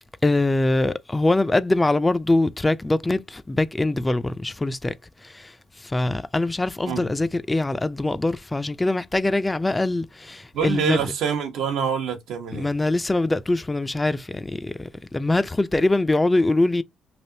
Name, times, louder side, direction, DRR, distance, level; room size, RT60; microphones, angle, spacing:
voice 1, 0.2-11.1 12.5-16.8, left 2 dB, 15° left, 0.3 m, -23 dB
voice 2, 10.5-12.7, right 7 dB, 85° right, 0.9 m, -26 dB
3.3 x 2.5 x 2.6 m
cardioid pair, 90°, 0 cm